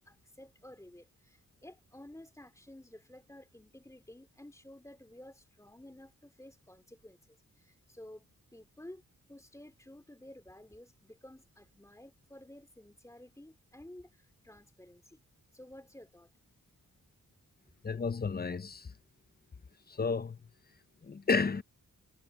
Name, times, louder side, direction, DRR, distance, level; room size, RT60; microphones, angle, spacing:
voice 1, 0.0-8.2 8.5-9.0 9.3-15.2 15.5-16.3, left 1 dB, 10° left, 2.8 m, -53 dB
voice 2, 17.8-18.9 19.9-20.4 21.0-21.6, left 4 dB, 30° left, 0.6 m, -32 dB
wide cardioid pair, 85°, 34 cm